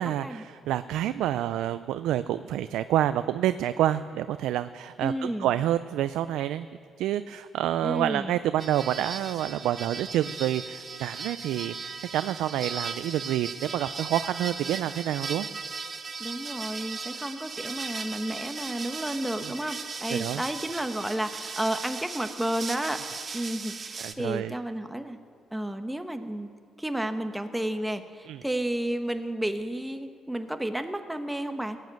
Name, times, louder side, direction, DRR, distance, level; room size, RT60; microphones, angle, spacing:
voice 1, 0.0-6.7 7.0-15.5 19.4-19.5 20.1-20.4 24.0-24.5 28.3-28.4, right 12 dB, 90° right, 12 dB, 0.4 m, -28 dB
voice 2, 5.0-5.5 7.8-8.3 16.2-23.0 23.3-25.2 25.5-26.5 26.8-31.8, right 1 dB, 5° right, 7 dB, 1.1 m, -32 dB
sound 1, 8.6-24.1, right 5 dB, 40° right, 1.1 m, -37 dB
17.5 x 9.6 x 7.8 m, 2.4 s
cardioid pair, 90°, 0 cm